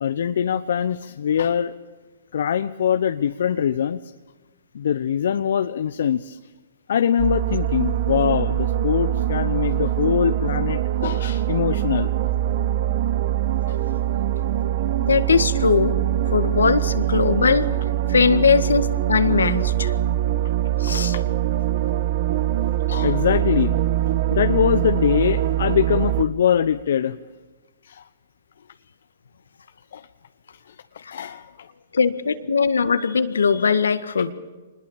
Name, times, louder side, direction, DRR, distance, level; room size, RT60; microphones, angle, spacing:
voice 1, 0.0-1.7 2.3-4.1 4.7-6.4 6.9-12.1 13.7-13.8 21.1-21.2 22.9-23.8 24.3-27.2 27.8-28.0 29.9-30.1 30.7-30.8 31.1-31.5 34.2-34.3, left 8 dB, 70° left, 11 dB, 0.8 m, -23 dB
sound 1, 7.2-26.2, right 12 dB, 55° right, 1.1 m, -23 dB
voice 2, 15.0-15.9 16.3-17.7 18.1-19.9 20.8-21.1 22.9-23.0 31.9-34.3, left 5 dB, 85° left, 11 dB, 1.7 m, -20 dB
25.5 x 20.5 x 7.3 m, 1.3 s
hypercardioid pair, 130°, 0 cm